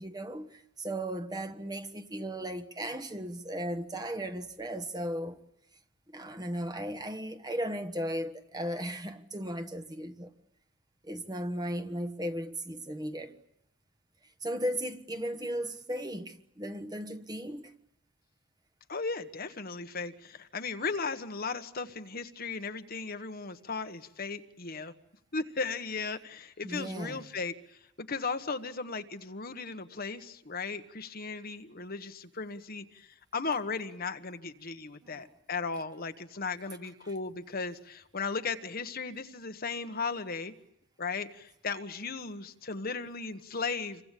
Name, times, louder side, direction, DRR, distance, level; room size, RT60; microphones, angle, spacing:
voice 1, 0.0-5.4 6.1-10.3 11.0-13.4 14.4-17.7 26.6-27.2 35.0-35.2, equal, 20° right, 1.5 m, -36 dB
voice 2, 18.9-24.9 25.3-40.5 41.0-44.0, left 4 dB, 45° left, 1.4 m, -36 dB
28.0 x 24.0 x 8.4 m
head